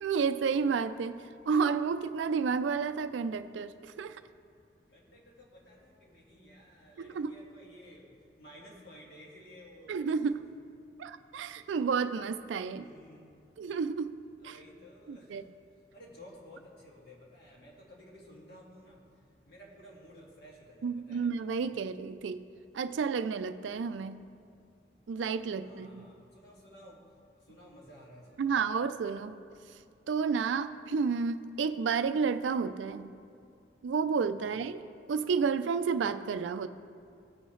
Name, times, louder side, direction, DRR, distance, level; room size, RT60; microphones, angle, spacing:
voice 1, 0.0-4.2 7.0-7.4 9.9-10.5 11.0-12.8 13.6-14.1 14.4-14.6 15.1-15.4 20.8-22.5 22.7-24.2 25.1-26.1 28.4-29.4 30.1-33.1 33.8-36.7, right 5 dB, 90° right, 12 dB, 0.4 m, -31 dB
voice 2, 4.9-8.1 8.4-10.6 12.7-13.5 14.4-15.4 15.7-19.0 19.4-21.3 25.5-27.0 27.4-28.5 34.4-34.8, equal, 60° left, -4 dB, 2.1 m, -54 dB
16.5 x 5.5 x 3.1 m, 2.4 s
head